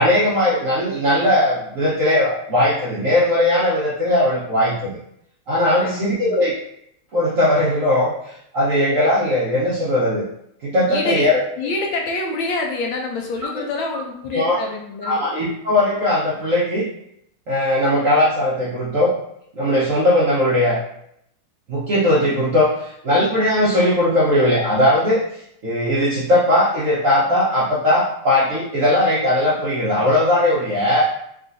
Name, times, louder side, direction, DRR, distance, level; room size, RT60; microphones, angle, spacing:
voice 1, 0.0-4.9 5.5-6.5 7.1-10.2 10.6-11.4 14.3-14.6 15.0-16.9 17.5-19.1 19.5-20.8 21.7-25.2 25.6-31.1, left 1 dB, 65° right, -8 dB, 0.8 m, -18 dB
voice 2, 5.8-6.4 10.9-11.3 11.6-15.2, left 2 dB, 75° left, 1 dB, 1.4 m, -26 dB
3.7 x 2.4 x 2.5 m, 0.73 s
omnidirectional pair, 2.2 m